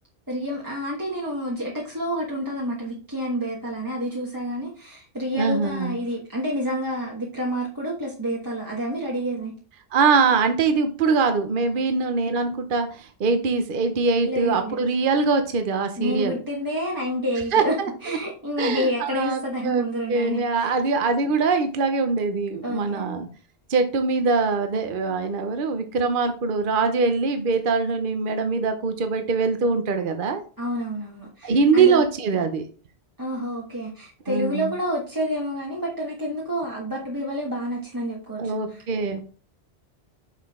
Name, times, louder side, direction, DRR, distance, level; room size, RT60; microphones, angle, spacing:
voice 1, 0.3-9.5 14.2-14.8 16.0-17.7 18.0-20.7 22.6-23.0 30.6-32.0 33.2-38.8, equal, 20° right, -3 dB, 1.3 m, -29 dB
voice 2, 5.4-6.0 9.9-16.4 17.5-17.9 18.6-23.3 23.7-30.4 31.4-32.7 34.3-34.7 38.4-39.2, right 4 dB, 55° right, 7 dB, 0.9 m, -23 dB
6.6 x 5.8 x 3.6 m, 0.40 s
omnidirectional pair, 1.1 m